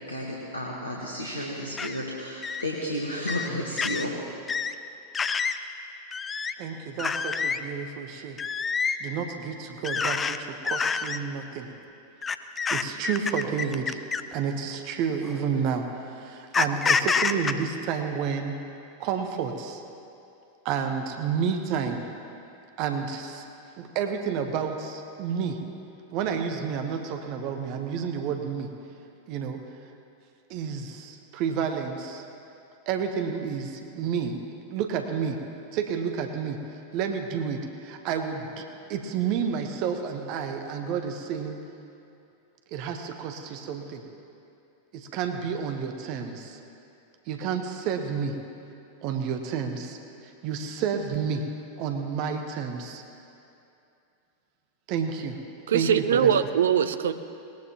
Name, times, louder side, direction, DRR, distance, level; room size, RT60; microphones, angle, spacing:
voice 1, 0.1-4.2, left 1 dB, 80° left, -2 dB, 1.5 m, -32 dB
sound 1, 1.8-1.9 2.4-2.6 3.3-3.5 3.8-4.0 4.5-4.7 5.1-5.6 6.1-6.5 7.0-7.6 8.4-9.0 9.8-10.4 10.6-11.2 12.2-14.3 15.2-15.4 16.5-17.5, left 5 dB, 20° left, 0.5 m, -27 dB
voice 2, 6.6-8.4 9.0-11.7 12.7-14.0 14.3-18.6 19.0-19.8 20.6-22.0 22.8-23.4 23.8-25.6 26.1-28.7 29.3-29.6 30.5-32.2 32.9-35.4 35.7-41.6 42.7-44.0 44.9-46.6 47.3-48.4 49.0-51.5 51.8-53.0 54.9-55.4 55.7-56.3, right 6 dB, 45° right, 5 dB, 1.1 m, -30 dB
voice 3, 55.7-57.1, right 8 dB, 65° right, 11 dB, 0.6 m, -22 dB
19.5 x 19.0 x 3.0 m, 2.7 s
figure-of-eight pair, 90°, 0 cm